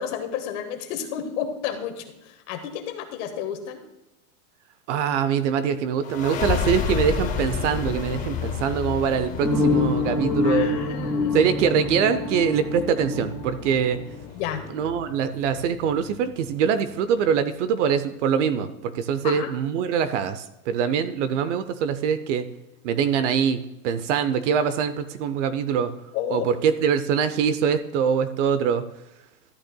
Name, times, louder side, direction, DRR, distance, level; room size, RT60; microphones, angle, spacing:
voice 1, 0.0-3.8 10.4-11.4 14.3-14.6 19.2-19.5 26.1-26.5, left 9 dB, 50° left, 6 dB, 1.5 m, -31 dB
voice 2, 4.9-10.8 11.3-14.0 14.7-22.5 22.8-25.9 26.3-28.8, right 7 dB, 50° right, 11 dB, 0.7 m, -23 dB
sound 1, 6.0-17.3, left 7 dB, 20° left, 0.5 m, -32 dB
sound 2, 9.4-14.2, left 3 dB, 5° right, 2.3 m, -26 dB
13.0 x 9.1 x 2.3 m, 0.91 s
supercardioid pair, 155°, 46 cm